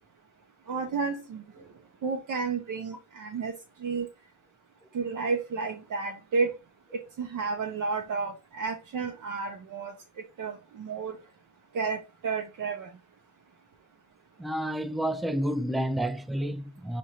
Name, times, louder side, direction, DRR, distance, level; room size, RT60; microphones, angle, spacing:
voice 1, 0.7-1.4 2.0-3.5 3.8-4.1 4.9-6.5 7.2-9.9 10.4-11.2 11.7-12.9, right 4 dB, 80° right, 0.7 m, -31 dB
voice 2, 14.4-17.0, equal, ahead, 0.4 m, -30 dB
5.2 x 2.5 x 2.9 m
cardioid pair, 100°, 31 cm